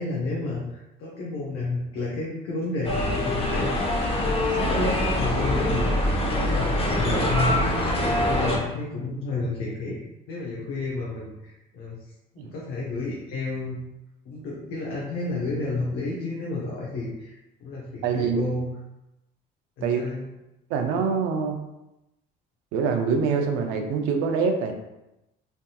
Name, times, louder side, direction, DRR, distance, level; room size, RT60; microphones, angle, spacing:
voice 1, 0.0-10.0 10.3-12.0 12.3-13.8 14.3-18.7 19.8-20.2, left 2 dB, 80° left, -4 dB, 0.7 m, -31 dB
sound 1, 2.8-8.6, left 1 dB, 30° left, 0.7 m, -24 dB
voice 2, 18.0-18.4 19.8-20.0 20.7-21.6 22.7-24.7, right 5 dB, 90° right, 5 dB, 0.5 m, -24 dB
3.4 x 2.6 x 2.3 m, 0.92 s
cardioid pair, 90°, 20 cm